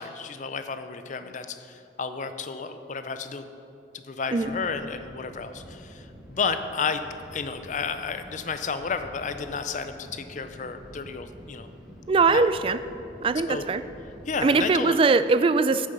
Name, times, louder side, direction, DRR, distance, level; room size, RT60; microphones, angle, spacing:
voice 1, 0.0-3.4 3.9-7.0 7.3-11.7 12.3-12.5 13.5-13.7 14.3-15.0 15.7-15.8, left 5 dB, 40° left, 9 dB, 0.5 m, -32 dB
sound 1, 4.3-14.6, equal, 5° right, 1.9 m, -48 dB
voice 2, 12.1-12.8 13.2-13.8 14.4-15.9, right 4 dB, 30° right, 13 dB, 0.3 m, -21 dB
9.0 x 7.0 x 6.7 m, 2.8 s
head